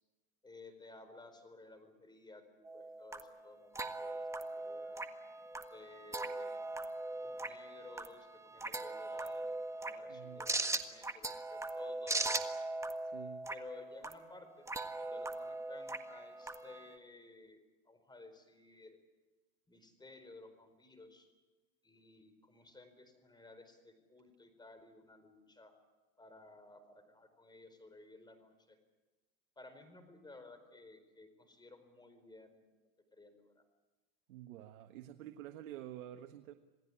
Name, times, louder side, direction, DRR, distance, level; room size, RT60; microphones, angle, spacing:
voice 1, 0.4-5.0 5.7-6.6 7.2-12.5 13.5-14.7 15.0-19.0 19.7-21.3 21.8-25.7 26.2-28.8 29.6-32.6 33.1-33.6, left 2 dB, 10° left, 9 dB, 4.5 m, -56 dB
sound 1, 2.7-17.0, right 2 dB, 5° right, 1.6 m, -40 dB
voice 2, 10.1-10.5 13.0-13.5 34.3-36.5, right 12 dB, 85° right, 7 dB, 1.6 m, -49 dB
27.5 x 18.5 x 9.9 m, 1.2 s
supercardioid pair, 125°, 40 cm